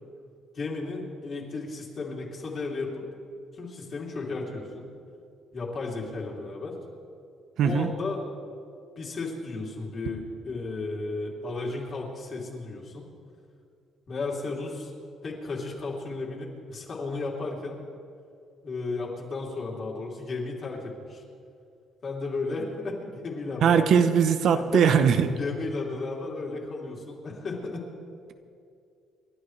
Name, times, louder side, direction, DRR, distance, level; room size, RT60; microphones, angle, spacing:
voice 1, 0.5-3.0 3.5-4.9 5.5-6.8 7.6-8.2 9.0-13.1 14.1-14.9 15.2-17.8 18.6-21.2 22.0-24.0 24.5-24.9 25.4-27.8, left 3 dB, 35° left, -3 dB, 3.1 m, -34 dB
voice 2, 23.6-25.3, right 7 dB, 60° right, 8 dB, 0.9 m, -20 dB
29.5 x 12.0 x 3.3 m, 2.5 s
cardioid pair, 145°, 0 cm